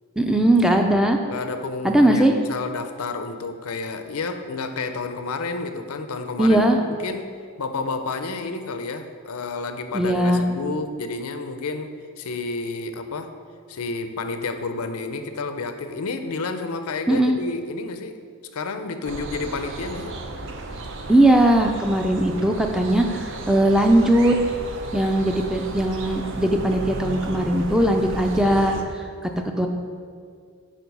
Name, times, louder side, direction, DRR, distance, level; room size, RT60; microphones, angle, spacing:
voice 1, 0.2-1.2 1.8-2.3 6.4-6.8 9.9-10.4 17.1-17.4 21.1-24.3 24.9-28.7 29.6-29.7, right 1 dB, 5° right, 3 dB, 0.4 m, -19 dB
voice 2, 1.3-7.3 7.6-13.3 13.7-18.2 18.5-20.2, left 3 dB, 85° left, 8 dB, 0.6 m, -30 dB
sound 1, 19.0-28.8, right 2 dB, 60° right, 0.6 m, -34 dB
9.3 x 3.7 x 5.3 m, 2.1 s
head